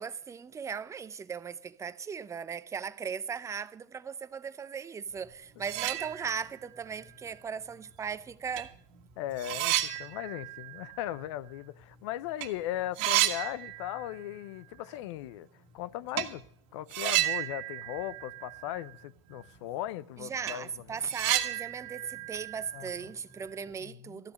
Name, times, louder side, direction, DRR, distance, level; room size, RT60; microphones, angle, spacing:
voice 1, 0.0-8.7 20.2-24.3, right 6 dB, 20° right, 0.6 m, -38 dB
sound 1, 5.2-5.3 5.6-6.6 7.0-7.1 8.1-8.2 8.6-12.0 12.3-12.5 12.7-14.3 14.6-14.7 16.1-16.4 16.9-19.0 19.3-19.4 19.9-20.0 20.3-23.5, right 15 dB, 60° right, 1.6 m, -33 dB
voice 2, 9.2-15.5 15.7-16.4 16.7-20.7 22.7-23.1 23.8-24.2, left 13 dB, 70° left, 0.7 m, -38 dB
14.0 x 10.5 x 6.4 m
supercardioid pair, 120°, 16 cm